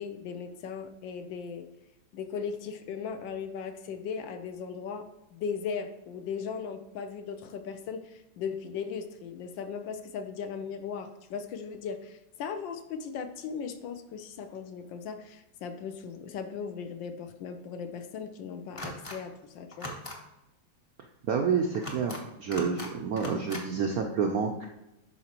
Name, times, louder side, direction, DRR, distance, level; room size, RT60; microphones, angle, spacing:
voice 1, 0.0-1.7 2.1-5.0 5.3-19.9, left 6 dB, 75° left, 8 dB, 1.3 m, -37 dB
sound 1, 18.8-19.2 19.7-20.2 21.7-22.2 22.5-22.9 23.2-23.6, equal, 25° left, 0.7 m, -39 dB
voice 2, 21.2-24.6, right 6 dB, 75° right, 2 dB, 0.8 m, -29 dB
11.5 x 4.3 x 2.9 m, 0.92 s
omnidirectional pair, 2.1 m